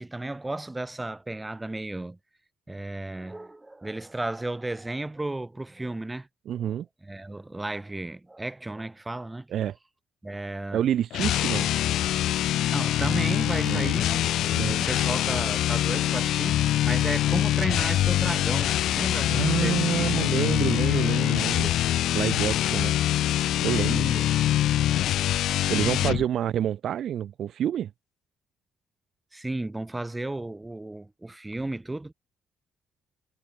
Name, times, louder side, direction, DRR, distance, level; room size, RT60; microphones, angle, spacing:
voice 1, 0.0-2.2 2.7-6.3 6.6-9.5 10.2-10.8 12.7-21.1 23.7-24.3 26.0-26.2 29.3-32.1, right 2 dB, 15° right, 6.8 m, -34 dB
voice 2, 6.5-6.9 9.5-9.8 10.7-11.7 13.6-13.9 14.5-14.9 19.3-21.7 22.1-22.9 23.6-24.2 25.7-27.9, right 10 dB, 70° right, 0.6 m, -28 dB
sound 1, 11.1-26.2, left 13 dB, 80° left, 0.6 m, -24 dB
cardioid pair, 90°, 0 cm